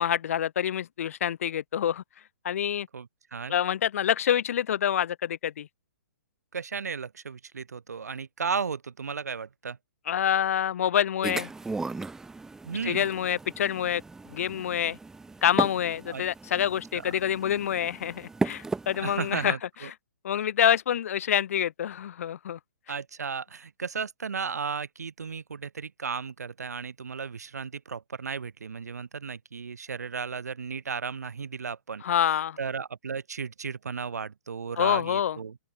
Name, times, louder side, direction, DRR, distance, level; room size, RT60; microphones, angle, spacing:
voice 1, 0.0-2.0 2.4-2.9 3.5-5.7 10.1-11.5 12.9-14.0 14.3-15.0 15.4-19.5 20.2-22.6 32.0-32.6 34.8-35.4, left 10 dB, 60° left, 0.7 m, -26 dB
voice 2, 2.9-3.6 6.5-9.8 12.6-13.1 16.1-16.2 16.9-17.2 19.0-19.9 22.9-32.0 32.6-35.6, right 6 dB, 80° right, 3.6 m, -35 dB
sound 1, 11.2-19.5, right 3 dB, 5° right, 0.8 m, -36 dB
open air
hypercardioid pair, 135°, 9 cm